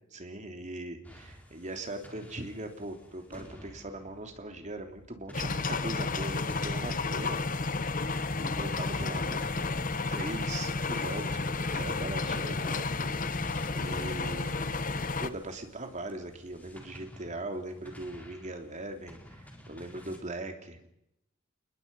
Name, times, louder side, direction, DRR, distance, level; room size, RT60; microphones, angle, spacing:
voice 1, 0.1-7.4 8.4-9.4 10.1-13.1 13.8-14.6 15.2-20.9, right 2 dB, 40° right, 5 dB, 3.1 m, -40 dB
sound 1, 1.0-20.2, equal, 10° left, 4.6 m, -52 dB
sound 2, 5.3-15.3, left 3 dB, 45° left, 1.0 m, -32 dB
29.0 x 20.5 x 5.5 m, 0.80 s
head